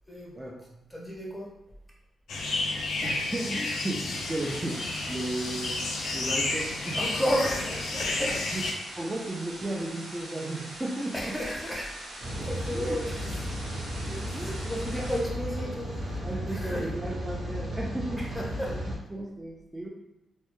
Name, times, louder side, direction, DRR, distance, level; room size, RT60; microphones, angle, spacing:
voice 1, 0.3-0.9 3.0-7.0 8.0-8.7 9.0-11.4 12.7-13.0 14.3-14.7 15.0-15.1 16.2-18.8 19.1-19.9, right 1 dB, 20° right, -4 dB, 0.3 m, -35 dB
voice 2, 0.9-1.5 6.9-8.4 11.1-16.2 16.5-16.9 18.2-18.8, equal, ahead, -3 dB, 0.8 m, -33 dB
sound 1, 2.3-8.7, left 2 dB, 85° left, 0.4 m, -31 dB
sound 2, 4.1-15.2, right 1 dB, 85° right, 0.9 m, -43 dB
Rain, 12.2-19.0, equal, 50° right, 0.8 m, -34 dB
2.1 x 2.0 x 2.9 m, 0.93 s
cardioid pair, 70°, 0 cm